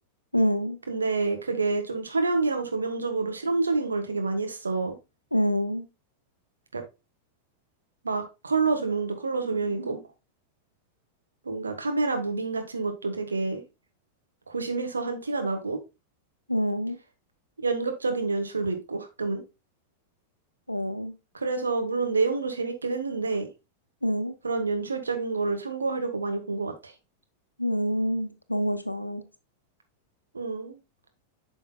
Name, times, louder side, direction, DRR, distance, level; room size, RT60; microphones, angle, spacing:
voice 1, 0.3-0.8 5.3-5.9 16.5-17.0 20.7-21.1 24.0-24.3 27.6-29.2, equal, 85° left, 0.8 m, -26 dB
voice 2, 0.9-5.0 6.7-6.8 8.0-10.0 11.4-13.6 14.5-15.8 17.6-19.4 21.3-23.5 24.4-26.9 30.3-30.8, right 3 dB, 75° right, 1.4 m, -28 dB
8.7 x 6.2 x 2.3 m
figure-of-eight pair, 90°, 0 cm